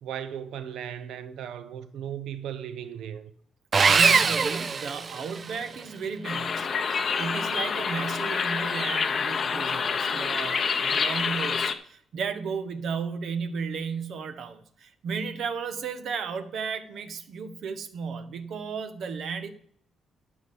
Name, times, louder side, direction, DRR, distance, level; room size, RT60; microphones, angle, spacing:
voice 1, 0.0-3.3, right 9 dB, 85° right, 1.0 m, -36 dB
Sawing, 3.7-5.6, right 5 dB, 35° right, 0.5 m, -22 dB
voice 2, 3.9-6.8 7.2-19.5, right 5 dB, 60° right, 1.2 m, -34 dB
sound 1, 6.2-11.7, left 5 dB, 40° left, 0.9 m, -27 dB
12.5 x 5.1 x 7.0 m
cardioid pair, 140°, 0 cm